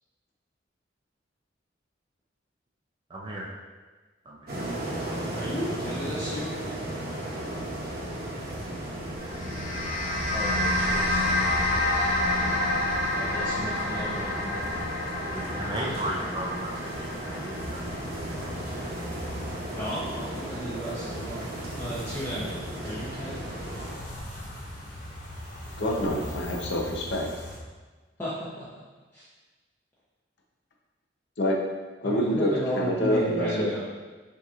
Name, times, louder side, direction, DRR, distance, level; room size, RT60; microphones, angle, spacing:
voice 1, 3.1-3.5 4.3-4.7 15.3-17.8, right 1 dB, 25° right, -4 dB, 0.5 m, -35 dB
sound 1, 4.5-24.0, right 1 dB, 55° right, 0.9 m, -36 dB
voice 2, 5.3-6.5 10.3-11.2 13.1-14.8 15.8-16.1 19.7-21.5 21.8-23.5 28.2-28.7 29.1-29.2 32.0-33.8, equal, 15° left, -10 dB, 0.7 m, -34 dB
sound 2, 9.2-19.7, left 1 dB, 40° left, 1.0 m, -29 dB
sound 3, 17.5-27.6, equal, 85° left, 1.3 m, -40 dB
voice 3, 25.8-27.3 31.4-31.6 32.0-33.7, equal, 65° left, -1 dB, 0.7 m, -26 dB
5.8 x 2.9 x 2.4 m, 1.3 s
head